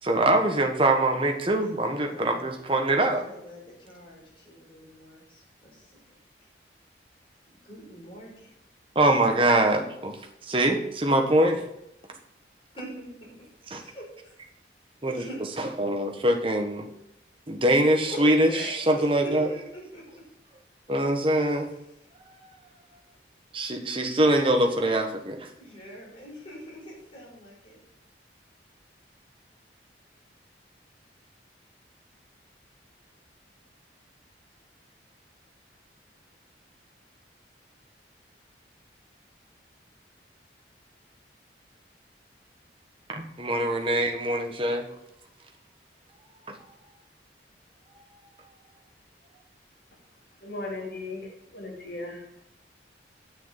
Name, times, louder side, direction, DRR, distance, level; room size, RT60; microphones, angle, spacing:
voice 1, 0.0-3.2 8.9-11.7 12.1-12.2 13.7-13.8 15.0-16.9 17.5-19.6 20.9-21.7 22.1-22.7 23.5-25.5 43.1-44.9 46.4-46.8 47.9-48.5, right 1 dB, 30° right, 1.4 m, -24 dB
voice 2, 2.1-2.5 3.2-6.0 7.6-8.5 10.7-10.8 12.8-13.0 13.8-14.3 15.1-15.4 18.1-20.0 21.6-21.8 25.6-27.8, equal, 30° left, 5.0 m, -42 dB
voice 3, 50.4-52.3, left 2 dB, 65° left, 3.5 m, -37 dB
9.1 x 7.2 x 7.5 m
head